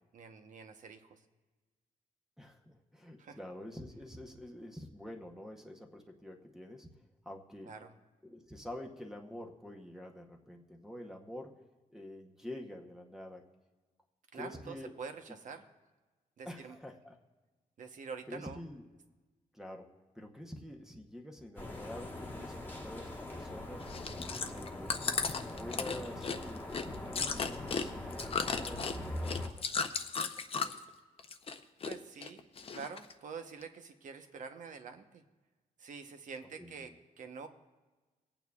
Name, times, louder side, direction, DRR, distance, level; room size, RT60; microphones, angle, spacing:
voice 1, 0.1-1.2 3.2-3.4 7.6-7.9 14.3-15.6 16.4-16.8 17.8-18.6 22.4-22.5 24.3-24.5 31.8-32.4 32.7-35.2 35.8-37.5, right 5 dB, 60° right, 7 dB, 0.9 m, -46 dB
voice 2, 2.4-6.9 7.2-7.7 8.2-11.6 11.9-13.4 14.3-14.9 15.3-15.4 16.5-17.2 18.3-18.8 19.5-19.9 20.1-23.9 24.5-25.0 25.6-30.3 30.6-30.8 36.6-37.0, left 1 dB, 5° right, 0 dB, 0.8 m, -47 dB
sound 1, 21.6-29.5, left 1 dB, 15° left, 1.3 m, -42 dB
Chewing mastication, 23.8-30.9 31.2-31.9 32.2-33.1 33.6-33.7, left 5 dB, 40° left, 0.6 m, -35 dB
24.0 x 8.9 x 2.3 m, 1.2 s
wide cardioid pair, 145°, 15 cm